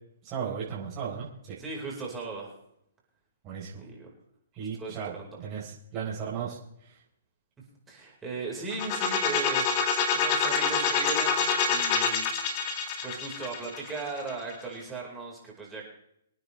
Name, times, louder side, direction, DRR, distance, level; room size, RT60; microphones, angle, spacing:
voice 1, 0.2-1.6 3.4-3.8 4.5-5.1 5.4-7.0, right 7 dB, 30° right, -6 dB, 4.2 m, -36 dB
voice 2, 1.6-2.5 3.8-4.1 4.6-5.4 7.9-12.6 13.0-15.9, right 3 dB, 15° right, -3 dB, 4.9 m, -38 dB
sound 1, 8.7-14.5, left 5 dB, 35° left, 2.0 m, -27 dB
25.5 x 9.6 x 3.4 m, 0.75 s
hypercardioid pair, 145°, 0 cm